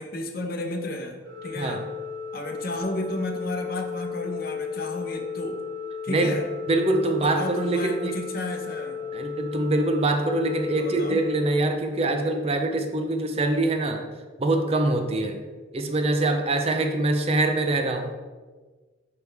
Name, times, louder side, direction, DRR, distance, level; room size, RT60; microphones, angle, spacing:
voice 1, 0.0-1.8 2.3-5.6 6.0-6.4 7.1-9.0 10.8-11.2, left 1 dB, 50° left, 4 dB, 0.8 m, -32 dB
Organ, 1.2-12.3, left 6 dB, 75° right, 1.1 m, -35 dB
voice 2, 6.1-6.4 6.7-8.1 9.1-14.0 14.4-15.4 15.7-18.1, right 2 dB, 30° right, 5 dB, 0.5 m, -24 dB
10.5 x 3.5 x 3.4 m, 1.4 s
head